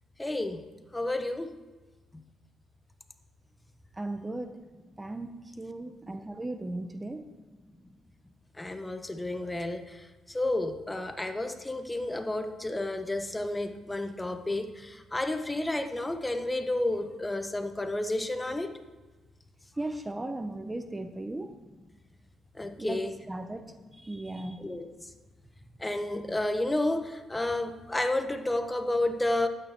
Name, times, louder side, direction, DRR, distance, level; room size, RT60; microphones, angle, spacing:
voice 1, 0.2-0.6 0.9-1.5 2.1-2.2 8.6-10.0 10.3-18.7 22.6-23.2 24.6-24.9 25.8-29.5, left 1 dB, 15° left, 8 dB, 0.9 m, -31 dB
voice 2, 4.0-4.6 5.0-7.2 19.8-21.5 22.8-23.0 23.3-23.6 24.0-24.6, right 2 dB, 15° right, 9 dB, 0.7 m, -36 dB
12.0 x 9.2 x 4.4 m, 1.2 s
cardioid pair, 90°, 0 cm